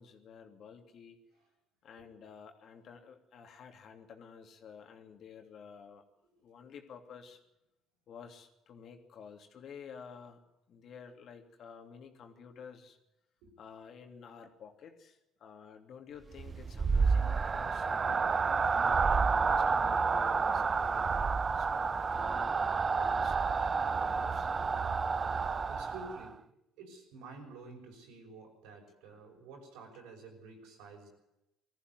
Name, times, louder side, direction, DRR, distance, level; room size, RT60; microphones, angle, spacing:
voice 1, 0.0-1.2 1.8-6.0 6.4-7.4 8.1-10.4 10.7-13.0 13.6-18.2 18.6-22.5 22.9-24.5, left 6 dB, 60° left, 5 dB, 3.0 m, -51 dB
sound 1, 16.3-26.3, right 5 dB, 35° right, 0.8 m, -30 dB
voice 2, 25.2-26.5 26.8-31.1, right 3 dB, 85° right, 1 dB, 6.1 m, -50 dB
20.0 x 14.5 x 9.5 m, 0.90 s
supercardioid pair, 80°, 0 cm